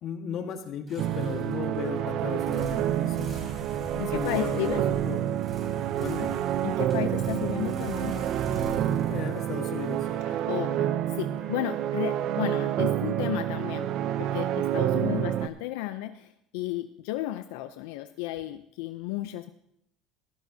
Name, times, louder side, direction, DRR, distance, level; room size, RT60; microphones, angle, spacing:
voice 1, 0.0-3.3 3.9-4.8 5.1-5.2 6.0-6.3 9.1-10.1 14.9-15.2, left 8 dB, 50° left, 5 dB, 1.4 m, -36 dB
sound 1, 0.9-10.7, right 3 dB, 30° right, 3.8 m, -41 dB
sound 2, 1.0-15.5, right 11 dB, 55° right, 0.5 m, -28 dB
voice 2, 4.0-4.8 6.6-8.3 10.3-13.9 14.2-19.5, left 15 dB, 80° left, 10 dB, 0.5 m, -33 dB
Wind instrument woodwind instrument, 7.5-11.0 11.4-15.6, left 2 dB, 5° left, 1.5 m, -53 dB
14.5 x 13.5 x 2.7 m, 0.77 s
cardioid pair, 130°, 0 cm